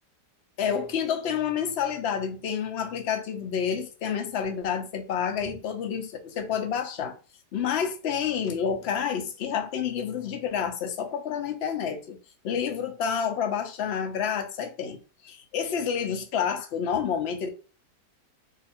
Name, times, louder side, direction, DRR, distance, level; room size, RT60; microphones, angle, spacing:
voice 1, 0.6-7.2 7.5-12.2 12.4-17.5, left 7 dB, 65° left, 0.6 m, -29 dB
2.7 x 2.5 x 4.2 m
omnidirectional pair, 1.8 m